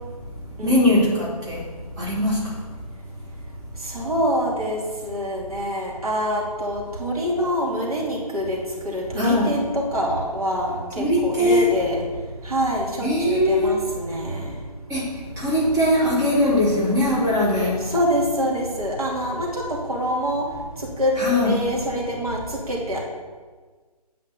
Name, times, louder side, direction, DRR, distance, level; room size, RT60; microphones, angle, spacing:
voice 1, 0.6-1.6 2.0-2.6 9.2-9.5 11.0-11.7 13.0-13.8 14.9-17.9 21.2-21.6, left 1 dB, 15° right, -9 dB, 2.9 m, -20 dB
voice 2, 3.8-8.6 8.8-12.0 12.4-14.5 17.9-20.4 20.8-21.1 21.4-23.0, equal, 65° right, -4 dB, 2.8 m, -25 dB
9.3 x 5.6 x 6.6 m, 1.4 s
figure-of-eight pair, 150°, 20 cm